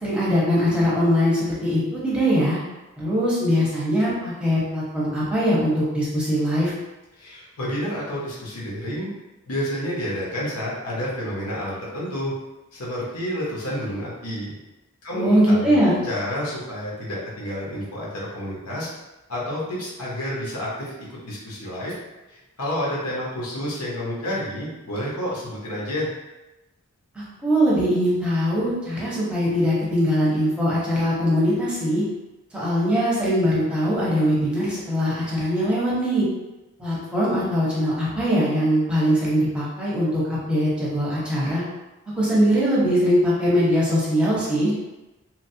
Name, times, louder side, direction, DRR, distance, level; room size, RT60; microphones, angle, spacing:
voice 1, 0.0-2.6 3.0-6.7 15.1-16.0 27.1-32.0 32.5-36.3 36.8-41.6 42.2-44.7, equal, 5° right, -8 dB, 0.7 m, -21 dB
voice 2, 7.2-9.1 9.5-12.3 12.7-14.5 15.0-18.9 19.3-20.9 21.2-21.9 22.3-26.1, equal, 90° left, -5 dB, 1.0 m, -29 dB
3.0 x 2.3 x 2.7 m, 1.0 s
head